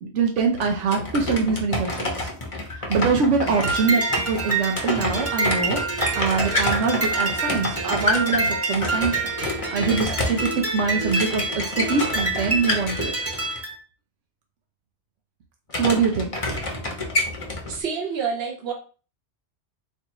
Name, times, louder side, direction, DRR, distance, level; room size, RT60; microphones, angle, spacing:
voice 1, 0.0-2.3 2.9-9.2 9.7-13.1 15.8-16.3, right 5 dB, 85° right, 2 dB, 1.0 m, -24 dB
sound 1, 0.6-13.6 15.7-17.8, left 2 dB, 35° left, 0.7 m, -28 dB
sound 2, 3.5-13.7, right 3 dB, 25° right, 0.3 m, -27 dB
voice 2, 17.7-18.7, right 6 dB, 60° right, 1 dB, 1.1 m, -28 dB
4.4 x 2.5 x 2.9 m, 0.37 s
omnidirectional pair, 1.2 m